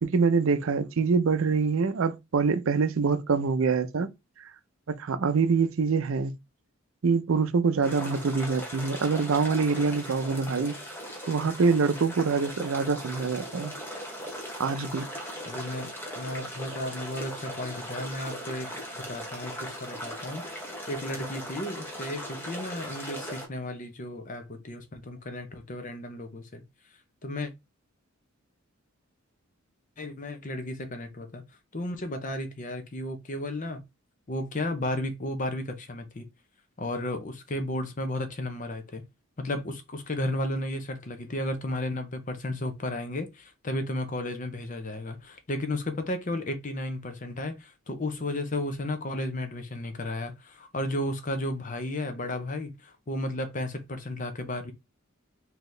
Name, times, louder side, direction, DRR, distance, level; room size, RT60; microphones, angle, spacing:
voice 1, 0.0-4.1 4.4-4.5 4.9-6.3 7.0-10.7 11.3-13.7 14.6-15.1, right 5 dB, 70° right, 0.5 m, -25 dB
sound 1, 7.8-23.5, equal, 10° left, 1.0 m, -39 dB
voice 2, 15.5-20.5 20.9-26.6 27.2-27.5 30.0-31.4 31.7-33.8 34.3-36.2 36.8-39.0 39.4-54.7, left 1 dB, 35° left, 0.7 m, -33 dB
4.0 x 2.9 x 3.2 m
head